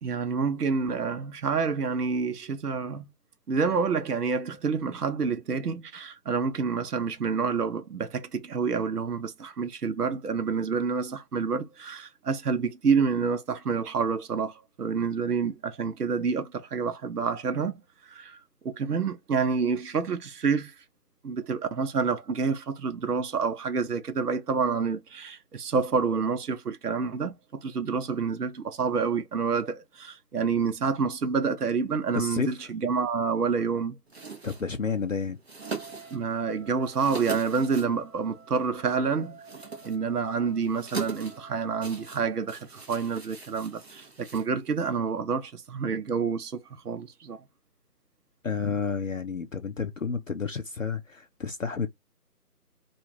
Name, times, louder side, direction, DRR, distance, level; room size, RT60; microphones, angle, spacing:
voice 1, 0.0-3.1 3.5-18.4 18.6-20.7 21.2-34.0 36.1-39.4 39.8-47.4, right 5 dB, 70° right, 0.9 m, -28 dB
voice 2, 32.1-32.7 34.4-35.4 48.4-51.9, left 5 dB, 55° left, 0.6 m, -30 dB
sound 1, 34.1-45.0, right 4 dB, 40° right, 1.0 m, -41 dB
Wind instrument woodwind instrument, 35.6-42.2, right 4 dB, 5° right, 1.3 m, -51 dB
3.1 x 2.5 x 3.7 m
figure-of-eight pair, 170°, 48 cm